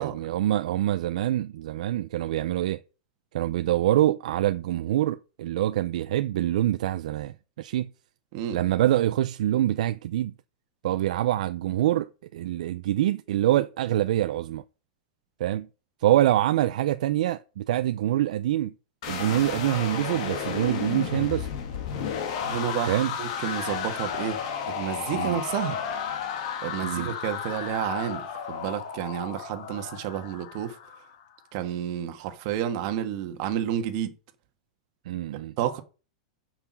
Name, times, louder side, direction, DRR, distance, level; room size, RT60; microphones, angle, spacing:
voice 1, 0.0-2.8 3.3-7.9 8.5-10.3 10.8-14.6 15.4-15.7 16.0-18.7 19.1-21.5 22.9-23.1 25.1-25.4 26.8-27.1 35.1-35.5, right 13 dB, 65° right, 0.5 m, -25 dB
sound 1, 19.0-31.1, left 7 dB, 50° left, 1.8 m, -33 dB
voice 2, 22.4-24.4 24.6-25.8 26.6-30.8 31.5-34.1 35.6-35.8, right 10 dB, 45° right, 1.4 m, -30 dB
6.9 x 5.8 x 7.2 m
supercardioid pair, 165°, 4 cm